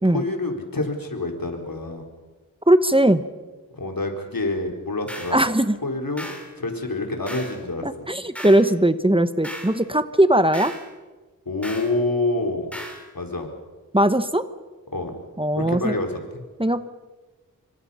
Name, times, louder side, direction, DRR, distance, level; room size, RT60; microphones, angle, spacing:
voice 1, 0.1-2.0 3.8-5.4 5.8-6.3 6.6-8.1 11.5-12.7 13.1-13.5 14.9-15.1 15.6-16.4, left 2 dB, 70° left, 2 dB, 4.1 m, -27 dB
voice 2, 2.7-3.2 5.3-5.8 7.8-10.7 13.9-14.5 15.4-16.0 16.6-16.9, right 1 dB, 15° right, 11 dB, 1.1 m, -19 dB
sound 1, 5.1-5.4 6.2-6.5 7.3-7.6 8.3-8.7 9.4-9.8 10.5-10.9 11.6-11.9 12.7-13.0, equal, 5° left, 5.5 m, -36 dB
27.0 x 24.5 x 5.7 m, 1.3 s
wide cardioid pair, 55°, 35 cm